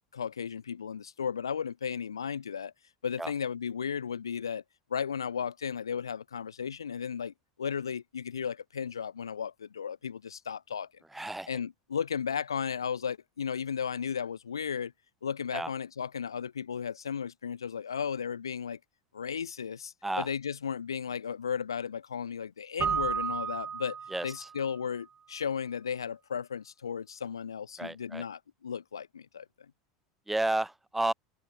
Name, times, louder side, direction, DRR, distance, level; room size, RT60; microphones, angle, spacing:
voice 1, 0.1-2.7 3.0-4.6 4.9-7.3 7.6-10.9 11.5-14.9 15.2-18.8 19.1-24.0 24.2-29.5, left 7 dB, 80° left, 1.9 m, -35 dB
voice 2, 11.1-11.5 15.5-15.7 20.0-20.3 24.1-24.3 27.8-28.2 30.3-31.1, right 2 dB, 5° right, 2.0 m, -31 dB
Keyboard (musical), 22.8-24.6, right 7 dB, 25° right, 1.1 m, -32 dB
figure-of-eight pair, 75°, 2 cm